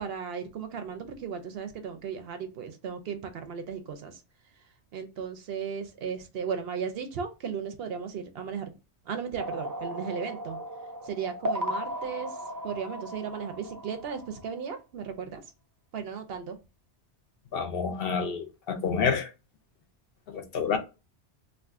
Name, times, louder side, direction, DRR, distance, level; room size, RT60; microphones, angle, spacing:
voice 1, 0.0-4.2 4.6-4.7 4.9-8.7 9.1-10.6 11.0-15.4 15.9-16.6, right 6 dB, 65° right, 0.8 m, -36 dB
sound 1, 9.4-14.7, equal, 35° right, 0.3 m, -36 dB
voice 2, 17.5-19.3 20.3-20.8, left 6 dB, 60° left, 0.8 m, -28 dB
2.5 x 2.5 x 3.5 m
omnidirectional pair, 1.2 m